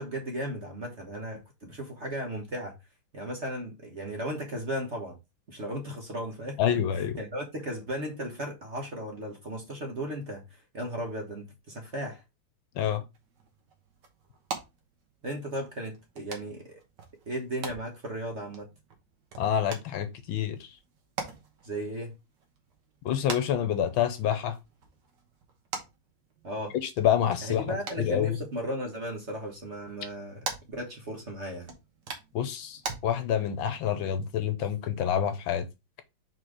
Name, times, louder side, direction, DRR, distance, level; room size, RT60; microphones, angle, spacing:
voice 1, 0.0-2.7 3.1-5.1 5.5-6.6 6.9-12.2 15.2-16.8 17.3-18.7 21.6-22.1 26.4-26.7 27.4-31.7, right 1 dB, 40° right, 1.3 m, -36 dB
voice 2, 6.6-7.2 12.8-13.0 19.4-20.7 23.0-24.6 26.7-28.4 32.3-35.6, left 9 dB, 70° left, 1.5 m, -27 dB
sound 1, 13.1-33.0, right 4 dB, 55° right, 1.8 m, -44 dB
4.5 x 4.3 x 4.8 m
omnidirectional pair, 2.4 m